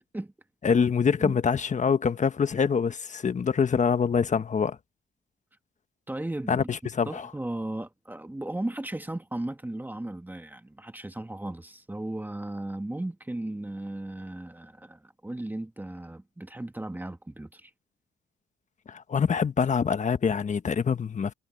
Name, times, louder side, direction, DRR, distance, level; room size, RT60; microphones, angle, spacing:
voice 1, 0.6-4.8 6.5-7.3 18.9-21.3, left 6 dB, 40° left, 1.3 m, -25 dB
voice 2, 6.1-6.7 7.0-17.7, right 1 dB, 10° right, 1.5 m, -36 dB
cardioid pair, 90°, 20 cm